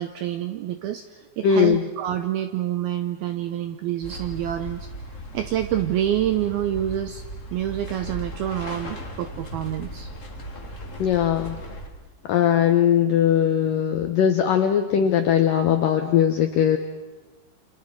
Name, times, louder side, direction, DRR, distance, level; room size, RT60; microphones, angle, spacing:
voice 1, 0.0-4.9 5.3-7.2 7.5-10.1, right 11 dB, 80° right, 8 dB, 2.2 m, -27 dB
voice 2, 1.4-1.8 11.0-11.6 12.3-16.8, left 9 dB, 80° left, 6 dB, 1.9 m, -20 dB
sound 1, 4.0-11.9, right 1 dB, 45° left, 0.9 m, -37 dB
29.5 x 27.0 x 4.8 m, 1.2 s
omnidirectional pair, 5.4 m